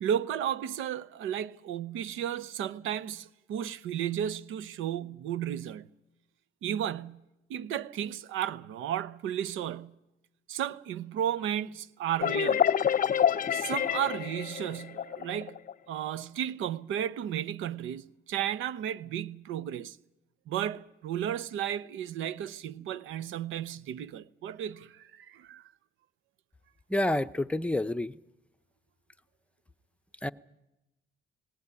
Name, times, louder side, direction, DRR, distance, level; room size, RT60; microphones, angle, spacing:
voice 1, 0.0-5.9 6.6-7.2 7.5-9.9 10.5-12.7 13.5-15.6 15.9-20.0 20.5-25.7, right 10 dB, 90° right, 0.8 m, -34 dB
sound 1, 12.2-15.7, left 9 dB, 45° left, 0.7 m, -27 dB
voice 2, 26.9-28.1 30.2-30.3, left 1 dB, 5° left, 0.7 m, -28 dB
19.0 x 18.5 x 9.7 m
cardioid pair, 90°, 20 cm